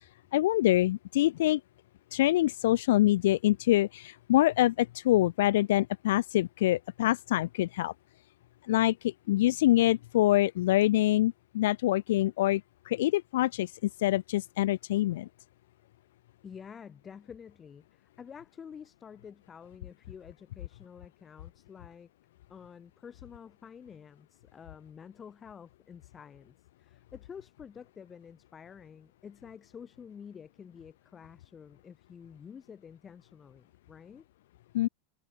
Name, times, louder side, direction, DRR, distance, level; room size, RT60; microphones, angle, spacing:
voice 1, 0.3-1.6 2.1-7.9 8.7-12.6 12.9-13.7 14.0-15.3 34.7-34.9, left 15 dB, 60° left, 0.7 m, -25 dB
voice 2, 16.4-22.1 22.5-34.3, left 7 dB, 25° left, 6.8 m, -49 dB
figure-of-eight pair, 85°, 0 cm